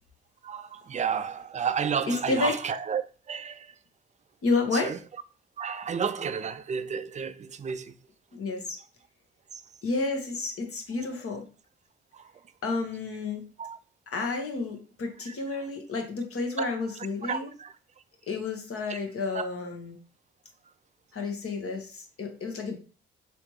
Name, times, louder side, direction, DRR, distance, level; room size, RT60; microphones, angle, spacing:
voice 1, 0.4-3.0 3.3-3.7 4.7-5.0 5.6-7.9 12.1-12.3 13.6-13.8 16.6-16.7 17.2-17.7 19.3-19.4, right 7 dB, 25° right, 0.4 m, -31 dB
voice 2, 2.1-2.5 4.4-4.9 8.3-8.8 9.8-11.5 12.6-13.4 14.1-17.5 18.3-20.0 21.1-22.8, left 3 dB, 50° left, 1.1 m, -30 dB
3.2 x 3.1 x 3.1 m
hypercardioid pair, 45°, 30 cm